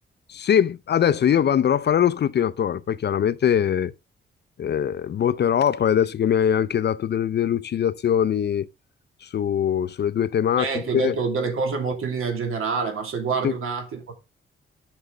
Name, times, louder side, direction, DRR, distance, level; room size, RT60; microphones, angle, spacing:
voice 1, 0.3-3.9 4.6-8.7 9.2-10.7 10.9-11.1 13.4-13.5, left 9 dB, 55° left, 0.5 m, -22 dB
voice 2, 10.6-14.1, right 4 dB, 85° right, 2.7 m, -26 dB
10.5 x 6.4 x 3.8 m
cardioid pair, 120°, 21 cm